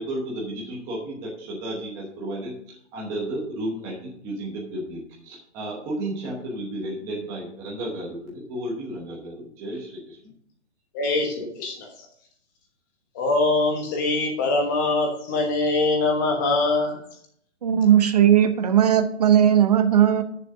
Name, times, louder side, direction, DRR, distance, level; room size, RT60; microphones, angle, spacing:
voice 1, 0.0-10.3, right 1 dB, 10° right, -4 dB, 1.0 m, -33 dB
voice 2, 10.9-11.9 13.1-17.0, left 2 dB, 15° left, 1 dB, 1.2 m, -23 dB
voice 3, 17.6-20.2, right 10 dB, 35° right, 9 dB, 0.8 m, -17 dB
6.8 x 6.0 x 7.3 m, 0.65 s
hypercardioid pair, 175°, 35 cm